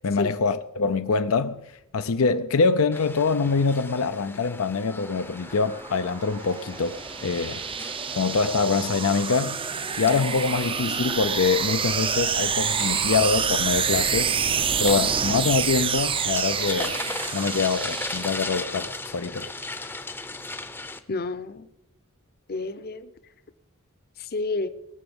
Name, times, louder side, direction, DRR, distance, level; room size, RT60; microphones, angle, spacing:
voice 1, 0.0-1.6 1.9-7.6 8.2-9.6 10.0-14.3 14.8-17.0 17.3-19.9, left 4 dB, 70° left, 0.6 m, -24 dB
sound 1, 2.9-21.0, left 2 dB, 10° left, 0.7 m, -38 dB
sound 2, 5.2-18.7, right 7 dB, 25° right, 0.5 m, -28 dB
voice 2, 21.1-21.7 22.5-23.1 24.2-24.7, left 3 dB, 45° left, 0.9 m, -30 dB
19.5 x 7.0 x 7.1 m
head